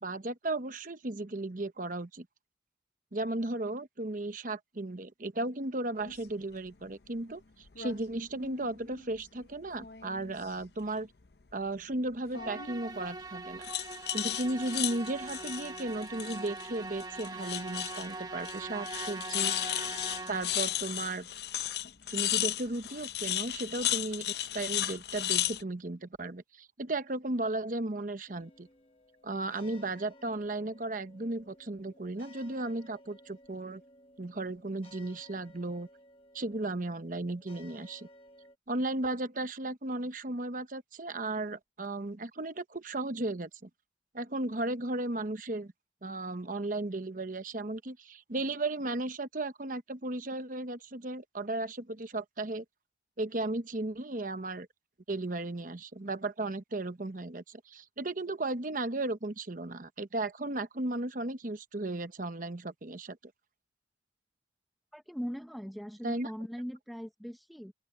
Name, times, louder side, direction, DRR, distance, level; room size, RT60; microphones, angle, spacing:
voice 1, 0.0-2.3 3.1-11.1 11.5-13.6 14.1-19.6 20.3-21.3 22.1-28.7 29.2-33.8 34.2-35.9 36.3-38.1 38.7-43.7 44.1-45.7 46.0-52.6 53.2-54.7 55.1-63.2 66.0-66.3, right 2 dB, 45° right, 1.0 m, -35 dB
sound 1, 6.0-6.2 7.7-8.0 8.3-9.3 9.7-10.7 12.3-12.8 13.6-16.7 17.0-18.1 18.4-18.6 18.8-25.6, left 12 dB, 60° left, 0.7 m, -34 dB
Musical instrument, 12.3-20.9, right 3 dB, 20° right, 1.3 m, -42 dB
sound 2, 28.3-38.6, left 1 dB, 30° left, 1.4 m, -57 dB
voice 2, 64.9-67.7, equal, ahead, 1.0 m, -40 dB
open air
head